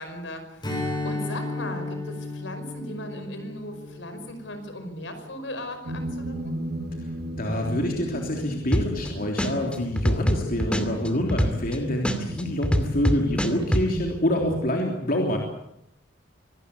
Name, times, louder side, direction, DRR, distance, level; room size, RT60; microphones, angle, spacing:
voice 1, 0.0-6.5, left 1 dB, 70° left, 8 dB, 5.3 m, -37 dB
Strum, 0.6-5.4, left 2 dB, 25° left, 5.7 m, -34 dB
sound 1, 5.9-14.7, right 1 dB, 55° right, 3.0 m, -35 dB
voice 2, 7.4-15.4, left 1 dB, 50° left, 1 dB, 3.4 m, -26 dB
sound 2, 8.7-9.1 9.4-11.7 12.0-13.8, equal, 5° left, 2.5 m, -23 dB
25.0 x 19.0 x 8.4 m, 0.82 s
head